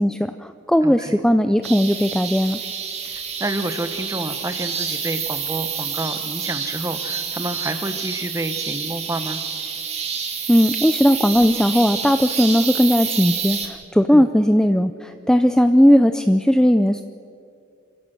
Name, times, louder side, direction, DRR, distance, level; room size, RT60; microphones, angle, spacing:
voice 1, 0.0-2.6 10.5-17.0, equal, 5° left, 9 dB, 0.4 m, -17 dB
voice 2, 0.8-1.2 3.0-9.4 14.1-14.3, right 1 dB, 15° right, 8 dB, 1.2 m, -29 dB
sound 1, 1.6-13.7, right 6 dB, 35° right, 2.1 m, -28 dB
27.0 x 15.5 x 6.2 m, 2.4 s
head